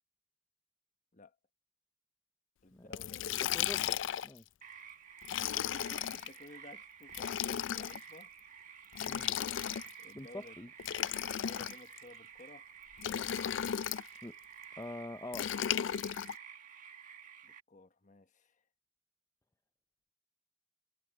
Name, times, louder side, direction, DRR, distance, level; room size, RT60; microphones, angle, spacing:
voice 1, 2.6-3.5 5.6-8.3 10.0-10.6 11.2-12.7 17.4-18.6, left 2 dB, 40° left, 1.2 m, -55 dB
Liquid, 2.9-4.4 5.2-6.3 7.1-8.0 8.9-10.0 10.8-12.0 13.0-14.1 15.3-16.3, left 10 dB, 75° left, 0.4 m, -35 dB
voice 2, 3.3-4.0 4.2-4.4 9.1-9.3 10.1-10.7 14.2-14.3 14.8-15.5, left 1 dB, 15° left, 0.5 m, -44 dB
sound 1, 4.6-17.6, right 7 dB, 40° right, 1.6 m, -52 dB
head